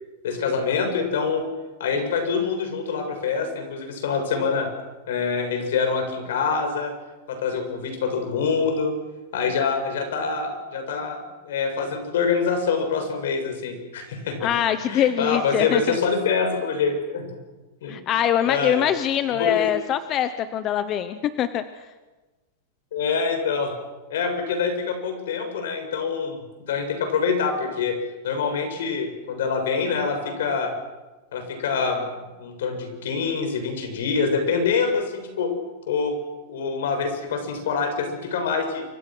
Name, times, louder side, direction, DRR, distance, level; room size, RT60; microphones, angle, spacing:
voice 1, 0.2-1.4 1.8-4.7 5.1-6.9 7.3-8.9 9.3-11.2 11.4-14.5 14.9-17.4 17.8-18.0 18.4-18.9 19.3-19.7 22.9-23.8 24.1-26.4 26.7-28.0 28.2-30.7 31.3-32.0 32.4-35.5 35.9-36.2 36.5-38.8, left 5 dB, 75° left, 5 dB, 7.4 m, -25 dB
voice 2, 14.4-16.0 17.9-21.6, left 10 dB, 25° left, 11 dB, 0.9 m, -23 dB
29.0 x 25.0 x 6.3 m, 1.2 s
supercardioid pair, 165°, 0 cm